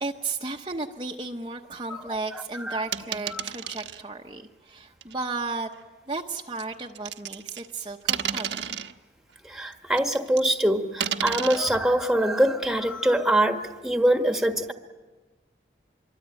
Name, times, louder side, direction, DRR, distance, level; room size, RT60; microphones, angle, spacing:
voice 1, 0.0-5.7 6.1-8.7, right 3 dB, 25° right, 1 dB, 1.0 m, -34 dB
voice 2, 2.3-2.8 3.3-3.4 9.4-14.7, right 1 dB, 5° right, 5 dB, 1.6 m, -24 dB
sound 1, 2.9-4.0 5.0-5.1 6.6-7.7 8.1-8.9 10.0-10.6 11.0-11.6, right 8 dB, 80° right, 1.2 m, -31 dB
26.0 x 23.5 x 9.1 m, 1.3 s
head